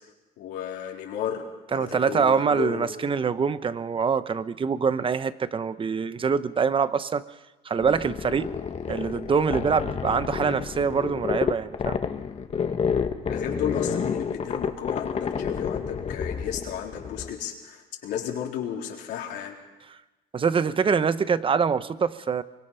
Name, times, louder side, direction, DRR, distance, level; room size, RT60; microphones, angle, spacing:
voice 1, 0.4-1.4 1.7-2.9 13.2-19.5, left 9 dB, 85° left, 0 dB, 3.9 m, -33 dB
voice 2, 1.7-7.2 7.6-8.5 8.9-12.0 20.3-22.4, right 6 dB, 30° right, 13 dB, 0.9 m, -24 dB
sound 1, 7.8-17.3, left 6 dB, 40° left, 1.4 m, -30 dB
24.0 x 22.5 x 5.7 m, 1.1 s
cardioid pair, 110°, 17 cm